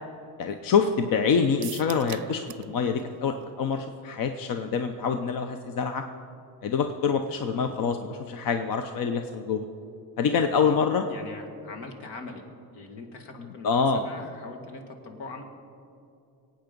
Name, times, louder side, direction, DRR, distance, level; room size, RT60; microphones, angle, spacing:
voice 1, 0.4-6.0 6.6-9.7 10.2-11.0 13.6-14.0, left 6 dB, 55° left, 7 dB, 0.8 m, -26 dB
sound 1, 1.6-2.7 3.0-3.1 3.4-3.5, right 16 dB, 60° right, 0.5 m, -40 dB
voice 2, 10.2-10.8 11.1-12.4 12.7-15.4, left 3 dB, 75° left, 5 dB, 2.0 m, -41 dB
22.0 x 8.9 x 5.3 m, 2.6 s
cardioid pair, 135°, 41 cm